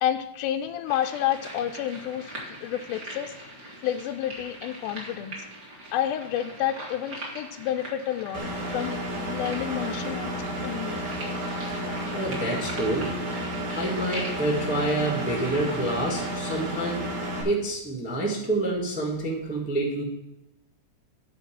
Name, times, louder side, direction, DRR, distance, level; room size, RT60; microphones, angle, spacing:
voice 1, 0.0-3.4 3.8-5.4 5.9-8.4 8.7-10.3 10.6-11.0, left 11 dB, 90° left, 6 dB, 2.1 m, -30 dB
sound 1, 0.9-16.3, right 1 dB, 35° right, 2.7 m, -42 dB
Engine, 8.3-17.4, right 1 dB, 80° right, 3.7 m, -32 dB
voice 2, 12.1-13.1 13.7-17.1 17.4-20.0, right 2 dB, 10° right, -1 dB, 0.5 m, -27 dB
10.5 x 4.0 x 7.4 m, 0.88 s
omnidirectional pair, 3.5 m